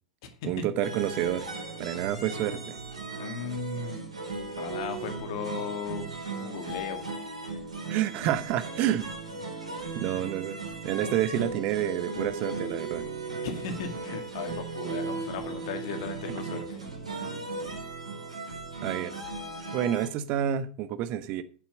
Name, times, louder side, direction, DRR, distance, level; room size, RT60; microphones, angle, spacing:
voice 1, 0.4-1.5 1.8-2.8 7.9-9.1 9.9-10.6 10.8-13.1 18.8-19.1 19.7-21.4, right 11 dB, 40° right, 0.8 m, -29 dB
sound 1, 0.8-20.1, right 3 dB, 80° right, 4.1 m, -37 dB
voice 2, 3.2-4.1 4.6-6.1 6.4-7.0 10.1-10.2 13.4-16.8, left 6 dB, 50° left, 2.0 m, -36 dB
8.4 x 7.4 x 6.3 m
figure-of-eight pair, 90°, 3 cm